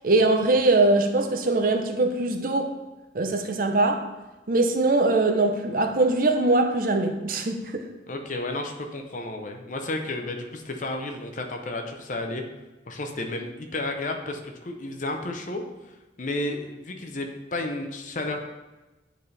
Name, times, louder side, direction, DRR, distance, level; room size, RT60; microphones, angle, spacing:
voice 1, 0.0-2.7 3.1-4.1 4.5-7.9, right 2 dB, 50° right, 0.6 m, -22 dB
voice 2, 8.1-12.4 12.9-15.6 16.2-18.4, left 2 dB, 45° left, 0.7 m, -32 dB
9.1 x 4.2 x 3.3 m
head